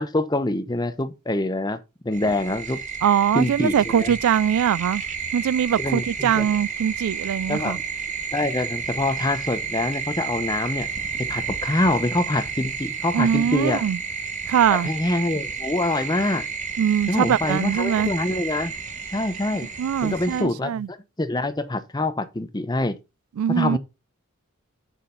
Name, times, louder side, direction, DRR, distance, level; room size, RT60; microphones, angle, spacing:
voice 1, 0.0-1.8 2.0-2.8 3.3-4.1 5.8-6.5 7.5-7.8 8.3-10.9 11.2-13.8 14.7-16.5 17.1-18.7 19.1-19.7 20.0-23.0 23.5-23.8, left 2 dB, 20° left, 0.8 m, -25 dB
sound 1, 2.1-20.4, right 6 dB, 35° right, 1.4 m, -31 dB
voice 2, 3.0-5.0 5.3-7.8 13.1-14.0 14.5-14.9 16.8-18.1 19.8-20.9 23.4-23.8, right 8 dB, 85° right, 0.3 m, -22 dB
7.5 x 6.4 x 3.8 m
head